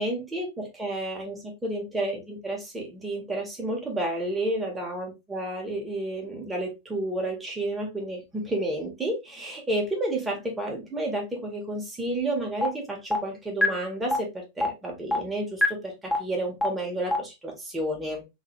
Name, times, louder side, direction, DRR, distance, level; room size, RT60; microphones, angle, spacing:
voice 1, 0.0-18.2, right 1 dB, 10° right, 2.0 m, -31 dB
sound 1, 12.6-12.7 13.1-13.2 13.6-13.7 14.1-14.2 14.6-14.7 15.1-15.2 15.6-15.7 16.1-16.2 16.6-16.7 17.1-17.2, left 1 dB, 5° left, 1.3 m, -21 dB
4.1 x 3.3 x 3.4 m
hypercardioid pair, 100°, 0 cm